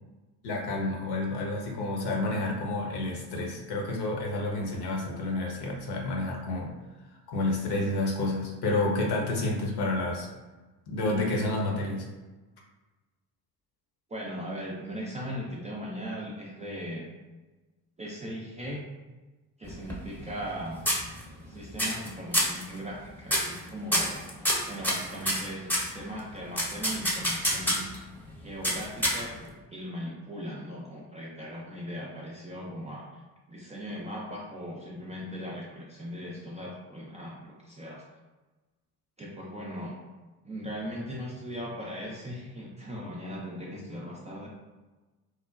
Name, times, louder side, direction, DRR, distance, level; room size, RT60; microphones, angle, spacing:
voice 1, 0.4-6.7 7.3-10.3 10.9-12.1, left 2 dB, 55° left, -1 dB, 0.8 m, -29 dB
voice 2, 14.1-17.0 18.0-18.8 19.6-20.8 21.5-24.2 24.7-27.9 28.4-29.3 29.7-33.1 33.5-38.0 39.2-39.9 40.4-44.5, equal, 15° right, -4 dB, 0.4 m, -38 dB
sound 1, 19.6-20.6 20.9-21.4 21.8-22.1 22.3-22.6 23.3-23.6 23.9-25.9 26.6-28.0 28.6-29.5, equal, 5° left, 0.8 m, -27 dB
3.1 x 2.1 x 2.4 m, 1.2 s
hypercardioid pair, 55°, 48 cm